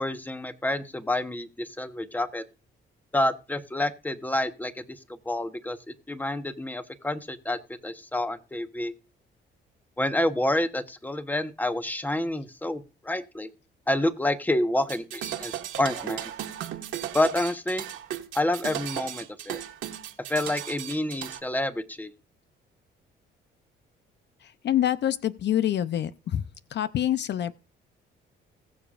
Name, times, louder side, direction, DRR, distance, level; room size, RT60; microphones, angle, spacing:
voice 1, 0.0-2.4 3.1-5.0 5.2-8.9 10.0-13.5 13.9-16.3 17.1-17.9 18.3-19.6 20.3-22.1, left 1 dB, 10° left, 1.2 m, -28 dB
sound 1, 14.8-21.4, right 11 dB, 85° right, 1.6 m, -36 dB
voice 2, 24.6-26.4 26.7-27.5, left 11 dB, 60° left, 0.7 m, -26 dB
20.5 x 6.9 x 2.5 m
cardioid pair, 90°, 20 cm